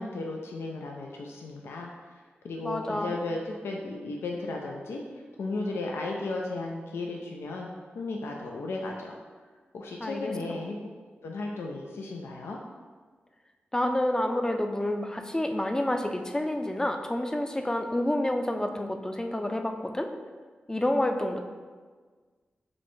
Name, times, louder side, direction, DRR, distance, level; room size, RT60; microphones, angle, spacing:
voice 1, 0.0-1.9 2.4-7.7 7.9-9.2 9.7-10.8 11.2-12.6, left 2 dB, 90° left, 0 dB, 0.4 m, -35 dB
voice 2, 2.6-3.2 10.0-10.6 13.7-20.1 20.7-21.4, left 1 dB, 15° left, 5 dB, 0.4 m, -29 dB
6.1 x 2.2 x 3.1 m, 1.5 s
cardioid pair, 50°, 4 cm